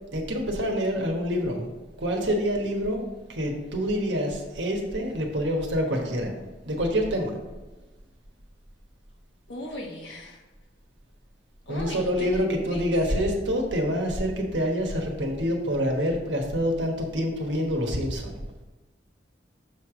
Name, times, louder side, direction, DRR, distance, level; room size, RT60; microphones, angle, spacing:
voice 1, 0.1-1.7 2.0-3.0 3.3-6.4 6.7-7.4 11.7-18.4, equal, 75° right, 1 dB, 1.2 m, -26 dB
voice 2, 9.5-10.4 11.6-12.4 12.7-13.3, left 1 dB, 85° left, 0 dB, 1.3 m, -38 dB
6.6 x 3.3 x 6.1 m, 1.2 s
head